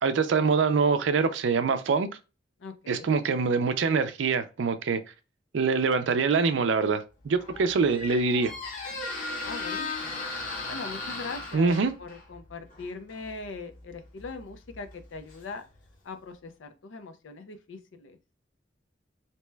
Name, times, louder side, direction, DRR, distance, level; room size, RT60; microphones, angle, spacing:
voice 1, 0.0-2.1 2.9-5.0 5.5-8.5 11.5-11.9, right 4 dB, 75° right, 0.4 m, -24 dB
voice 2, 2.6-3.2 9.4-10.3 10.7-15.6 16.0-18.2, left 3 dB, 85° left, 0.5 m, -41 dB
Squeak, 7.2-16.0, left 3 dB, 45° left, 0.8 m, -38 dB
2.8 x 2.2 x 3.2 m
head